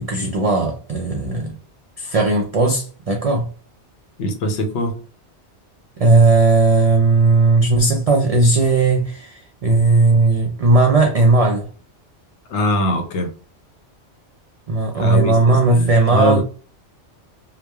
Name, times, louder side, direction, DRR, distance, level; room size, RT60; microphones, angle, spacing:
voice 1, 0.0-1.6 2.0-3.5 6.0-11.7 14.7-16.4, right 3 dB, 75° right, 0.3 m, -16 dB
voice 2, 4.2-5.0 12.5-13.3 15.0-16.4, left 1 dB, 80° left, 1.0 m, -22 dB
3.0 x 2.1 x 2.2 m
omnidirectional pair, 1.2 m